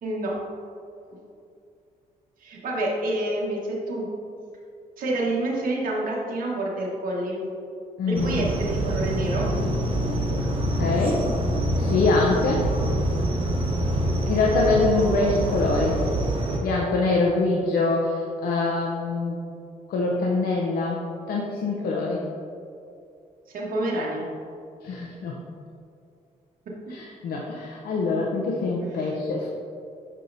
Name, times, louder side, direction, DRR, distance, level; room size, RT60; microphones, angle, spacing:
voice 1, 0.0-0.4 2.4-4.1 5.0-7.4 8.1-9.5 14.3-14.5 23.5-24.3, right 1 dB, 65° right, -3 dB, 1.4 m, -28 dB
voice 2, 8.0-8.5 10.8-11.2 11.8-12.6 14.3-16.0 16.6-19.4 19.9-22.2 24.8-25.4 26.9-29.5, left 3 dB, 75° left, -3 dB, 0.7 m, -24 dB
sound 1, 8.1-16.6, right 1 dB, 35° right, 0.9 m, -25 dB
6.3 x 5.5 x 2.7 m, 2.5 s
cardioid pair, 90°, 16 cm